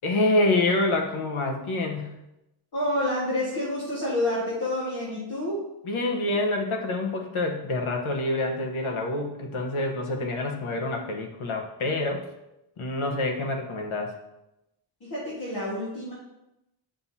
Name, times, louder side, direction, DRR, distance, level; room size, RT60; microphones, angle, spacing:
voice 1, 0.0-2.1 5.9-12.3 12.8-14.1, left 2 dB, 90° left, 2 dB, 1.1 m, -27 dB
voice 2, 2.7-5.7 15.0-16.1, left 1 dB, 50° left, -8 dB, 1.7 m, -28 dB
7.9 x 5.8 x 2.7 m, 0.89 s
wide cardioid pair, 150°, 48 cm